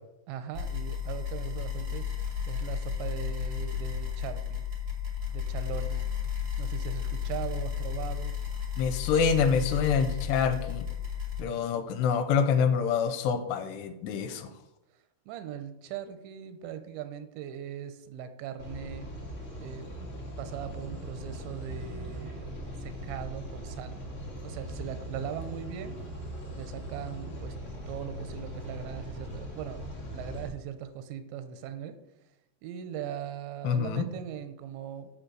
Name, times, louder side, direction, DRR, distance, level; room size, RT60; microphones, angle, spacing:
voice 1, 0.3-2.2 2.5-4.6 5.3-6.1 6.6-8.3 15.3-19.1 19.6-19.9 20.4-24.0 24.4-26.0 26.6-27.6 27.9-29.8 30.1-32.0 32.6-35.1, right 9 dB, 85° right, 10 dB, 3.1 m, -39 dB
sound 1, 0.5-11.4, left 7 dB, 45° right, 1.2 m, -33 dB
voice 2, 8.8-10.9 11.4-14.5 33.6-34.0, left 6 dB, 80° left, 9 dB, 2.7 m, -26 dB
sound 2, 18.6-30.5, equal, 60° left, 0.7 m, -40 dB
7.8 x 6.9 x 6.2 m, 0.92 s
omnidirectional pair, 5.1 m